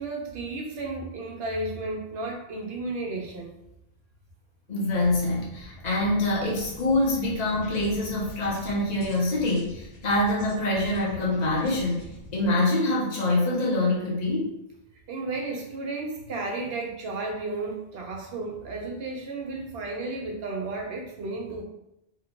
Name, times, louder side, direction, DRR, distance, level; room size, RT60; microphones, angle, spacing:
voice 1, 0.0-3.5 15.1-21.6, right 2 dB, 70° right, 1 dB, 0.9 m, -33 dB
voice 2, 4.7-14.6, left 2 dB, 45° left, -5 dB, 1.0 m, -25 dB
sound 1, 4.9-12.5, left 1 dB, 75° left, 1.0 m, -44 dB
2.9 x 2.2 x 3.7 m, 0.83 s
omnidirectional pair, 1.1 m